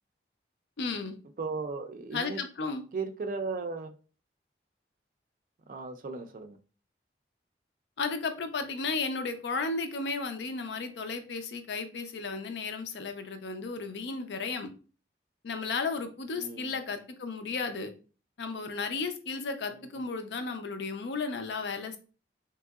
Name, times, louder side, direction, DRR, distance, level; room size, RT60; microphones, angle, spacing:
voice 1, 0.8-1.2 2.1-2.8 8.0-14.7 15.4-17.9 18.4-22.0, left 4 dB, 80° left, 0.5 m, -34 dB
voice 2, 1.4-2.4 2.9-3.9 5.7-6.6 16.3-16.7 19.7-20.0, right 4 dB, 50° right, 0.3 m, -36 dB
3.5 x 2.9 x 2.3 m
head